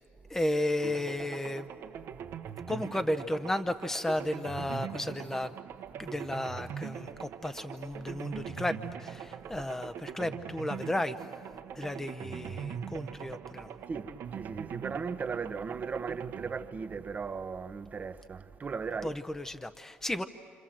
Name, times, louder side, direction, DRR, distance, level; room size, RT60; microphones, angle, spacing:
voice 1, 0.3-1.7 2.7-5.5 6.0-11.2 11.7-13.7 19.0-20.2, left 1 dB, 10° left, 0.7 m, -33 dB
sound 1, 0.8-17.7, right 8 dB, 75° right, 1.2 m, -42 dB
voice 2, 13.9-19.1, right 5 dB, 35° right, 0.9 m, -37 dB
28.0 x 27.5 x 7.6 m
cardioid pair, 90°, 4 cm